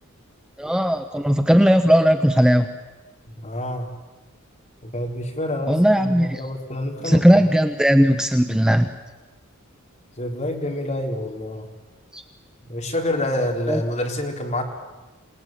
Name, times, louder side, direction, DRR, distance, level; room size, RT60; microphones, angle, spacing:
voice 1, 0.6-2.7 5.7-6.4 7.0-8.9 12.1-12.2 13.7-13.8, equal, 5° right, 7 dB, 0.9 m, -17 dB
voice 2, 3.4-3.9 4.8-7.4 10.2-11.7 12.7-14.6, left 1 dB, 35° left, 1 dB, 4.1 m, -27 dB
27.5 x 19.0 x 9.2 m, 1.1 s
head